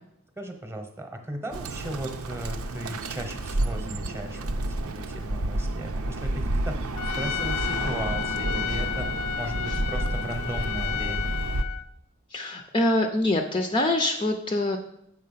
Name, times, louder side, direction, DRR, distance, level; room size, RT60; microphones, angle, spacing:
voice 1, 0.4-6.8 7.2-11.3, right 1 dB, 10° right, 6 dB, 0.9 m, -36 dB
Bird, 1.5-11.6, right 2 dB, 80° right, 0.7 m, -30 dB
Trumpet, 6.9-11.8, left 10 dB, 85° left, 0.5 m, -32 dB
voice 2, 12.3-14.8, left 1 dB, 20° left, 5 dB, 0.5 m, -24 dB
7.5 x 5.6 x 5.6 m, 0.77 s
head